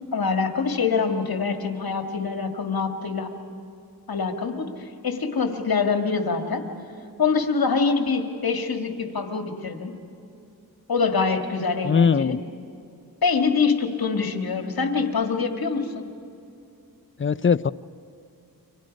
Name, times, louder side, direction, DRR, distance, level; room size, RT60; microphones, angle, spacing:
voice 1, 0.1-3.3 4.1-6.6 7.2-9.9 10.9-12.4 13.2-16.1, left 5 dB, 75° left, 6 dB, 2.0 m, -25 dB
voice 2, 11.8-12.4 17.2-17.7, left 6 dB, 35° left, 15 dB, 0.5 m, -20 dB
29.0 x 25.0 x 5.3 m, 2.6 s
cardioid pair, 55°, 36 cm